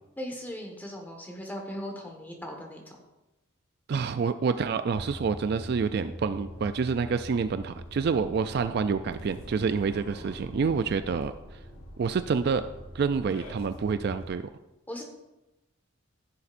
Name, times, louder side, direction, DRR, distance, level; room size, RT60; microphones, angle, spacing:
voice 1, 0.2-3.0 14.9-15.0, equal, 10° left, 1 dB, 1.4 m, -38 dB
voice 2, 3.9-11.3 12.0-12.7 12.9-14.5, right 5 dB, 50° right, 11 dB, 0.3 m, -28 dB
sound 1, 4.9-14.3, equal, 90° left, 1.5 m, -43 dB
15.0 x 6.9 x 2.6 m, 1.0 s
head